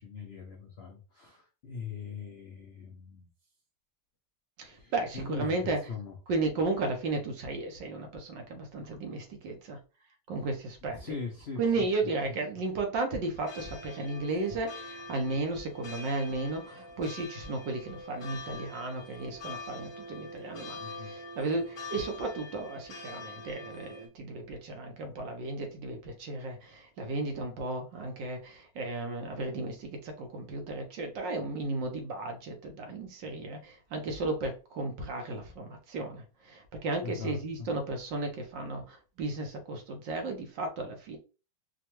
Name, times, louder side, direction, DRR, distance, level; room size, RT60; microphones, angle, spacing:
voice 1, 0.0-3.3 4.7-6.2 10.9-11.9 20.8-21.1 37.0-37.7, left 5 dB, 75° left, 1 dB, 0.5 m, -41 dB
voice 2, 4.6-5.8 6.3-9.8 10.3-11.0 11.6-41.2, right 3 dB, 75° right, 4 dB, 1.6 m, -34 dB
sound 1, 13.4-24.1, left 2 dB, 35° left, 1.2 m, -44 dB
4.9 x 2.3 x 3.0 m, 0.33 s
omnidirectional pair, 2.0 m